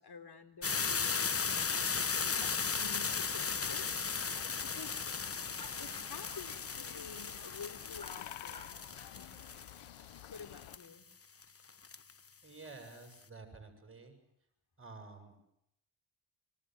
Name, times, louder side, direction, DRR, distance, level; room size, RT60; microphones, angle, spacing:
voice 1, 0.0-3.9 4.3-5.0 5.8-8.8 9.2-9.3 10.3-11.1, left 5 dB, 50° left, 9 dB, 3.8 m, -50 dB
sound 1, 0.6-10.9 11.4-11.5 11.7-12.1, left 5 dB, 30° left, 1.1 m, -36 dB
sound 2, 1.5-10.8, left 14 dB, 85° left, 1.1 m, -52 dB
sound 3, 3.6-3.8 5.6-6.4 6.8-6.9 8.0-8.1 8.5-9.1, left 1 dB, 10° left, 1.8 m, -53 dB
voice 2, 12.4-14.1 14.8-15.4, right 3 dB, 25° right, 5 dB, 7.4 m, -51 dB
25.5 x 25.0 x 7.9 m, 0.78 s
supercardioid pair, 60°, 49 cm